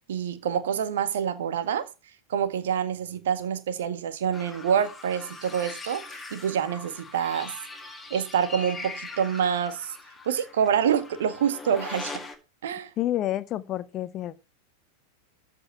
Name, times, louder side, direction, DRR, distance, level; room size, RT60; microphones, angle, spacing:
voice 1, 0.1-1.9 2.3-6.0 6.3-7.5 8.1-9.9 10.3-12.2 12.6-12.9, right 8 dB, 60° right, 1.7 m, -26 dB
sound 1, 4.3-12.4, left 3 dB, 10° left, 2.1 m, -41 dB
voice 2, 13.0-14.4, left 13 dB, 30° left, 0.8 m, -29 dB
13.5 x 5.4 x 5.8 m
figure-of-eight pair, 90°, 0 cm